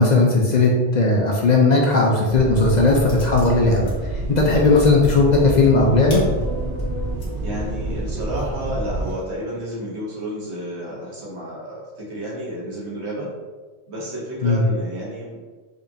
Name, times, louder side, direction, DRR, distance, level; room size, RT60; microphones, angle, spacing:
voice 1, 0.0-6.2 14.4-14.6, left 3 dB, 55° left, -1 dB, 0.5 m, -17 dB
sound 1, 2.3-9.1, right 1 dB, 90° right, 1.1 m, -27 dB
sound 2, 3.1-4.0 4.3-7.3 7.8-7.9 8.3-9.2, left 2 dB, 85° left, 1.4 m, -43 dB
voice 2, 7.4-13.3 13.9-15.5, equal, 75° right, -5 dB, 1.4 m, -31 dB
5.0 x 2.4 x 2.7 m, 1.4 s
omnidirectional pair, 1.2 m